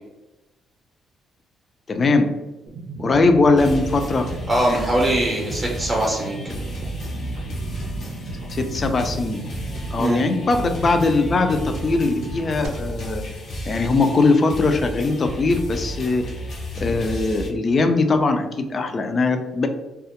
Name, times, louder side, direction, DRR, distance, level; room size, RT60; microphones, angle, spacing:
voice 1, 1.9-2.3 3.0-4.3 8.5-9.4 9.9-13.2 13.7-16.3 16.8-19.7, left 3 dB, 40° left, 7 dB, 0.3 m, -20 dB
sound 1, 2.7-12.7, right 2 dB, 80° right, 0.5 m, -35 dB
sound 2, 3.6-17.5, equal, 70° left, 0.6 m, -33 dB
voice 2, 4.5-6.4 10.0-10.2, right 1 dB, 25° right, -2 dB, 0.5 m, -21 dB
2.3 x 2.0 x 2.8 m, 1.0 s
cardioid pair, 90°, 0 cm